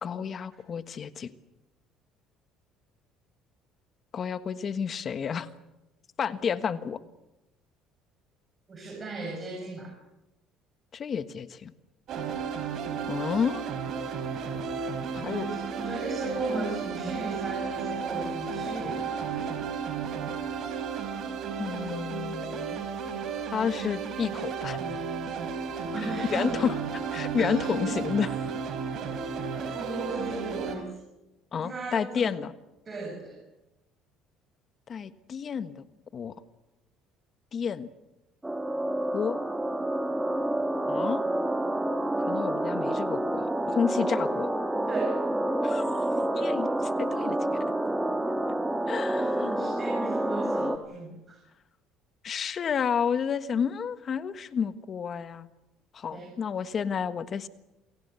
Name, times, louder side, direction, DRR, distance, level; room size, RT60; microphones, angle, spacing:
voice 1, 0.0-1.3 4.1-5.5 6.2-7.0 10.9-11.7 13.1-13.6 15.1-15.5 21.6-22.8 23.5-24.8 26.3-28.4 31.5-32.5 34.9-35.8 36.1-36.3 37.5-37.9 39.1-39.4 40.9-41.2 42.2-44.5 45.6-45.9 46.3-47.6 48.9-49.7 52.2-55.5 55.9-57.5, left 7 dB, 40° left, 12 dB, 1.4 m, -31 dB
voice 2, 8.7-9.9 15.2-19.4 25.9-26.6 27.2-28.0 29.5-31.0 31.5-32.3 32.9-33.4 44.9-45.2 49.1-49.2 49.5-51.4 56.1-56.3, right 2 dB, 30° right, 0 dB, 7.2 m, -36 dB
sound 1, 12.1-30.7, right 6 dB, 60° right, 4.8 m, -33 dB
sound 2, 38.4-50.8, right 1 dB, 10° right, 1.9 m, -28 dB
28.0 x 17.5 x 8.3 m, 0.97 s
cardioid pair, 100°, 0 cm